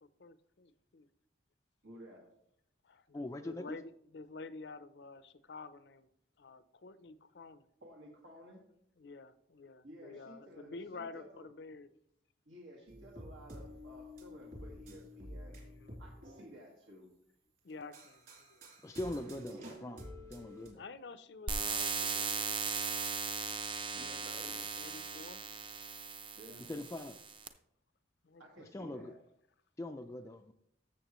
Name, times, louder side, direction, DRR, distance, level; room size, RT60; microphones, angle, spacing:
voice 1, 0.2-1.1 2.8-6.1 6.4-7.7 9.0-11.9 15.5-16.0 17.6-18.2 18.5-18.6 20.8-23.0 24.4-25.4 28.2-28.4, left 3 dB, 65° left, 14 dB, 0.5 m, -50 dB
voice 2, 1.8-2.2 7.8-8.6 9.8-11.5 12.5-15.6 16.0-17.1 19.5-19.8 23.9-24.6 26.4-26.6 28.4-29.2, equal, 85° right, -3 dB, 1.7 m, -54 dB
voice 3, 3.1-3.8 18.8-20.0 20.3-20.8 26.7-27.2 28.6-29.1 29.8-30.5, left 1 dB, 15° left, 6 dB, 0.3 m, -42 dB
sound 1, 12.9-16.4 17.7-20.7, equal, 50° right, 3.3 m, -50 dB
sound 2, 21.5-27.5, right 5 dB, 25° right, 0.6 m, -38 dB
13.5 x 7.2 x 3.0 m, 0.74 s
head